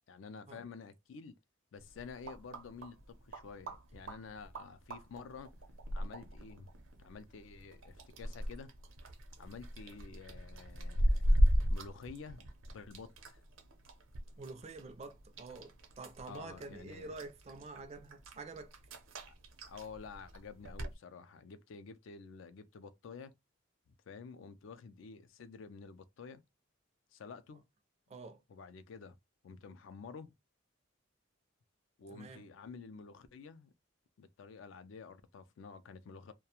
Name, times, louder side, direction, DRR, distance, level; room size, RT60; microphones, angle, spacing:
voice 1, 0.1-1.3 1.7-5.5 5.9-6.7 7.0-8.7 9.4-11.3 11.7-13.4 16.3-17.2 19.2-19.3 19.7-23.3 23.9-26.4 27.1-27.6 28.5-29.2 29.4-30.3 32.0-33.7 34.2-36.3, left 5 dB, 70° left, 0.4 m, -50 dB
sound 1, 1.8-20.9, equal, 80° right, 0.6 m, -37 dB
voice 2, 14.4-18.7 28.1-28.4 32.1-32.4, right 3 dB, 30° right, 0.4 m, -48 dB
2.3 x 2.1 x 2.9 m
head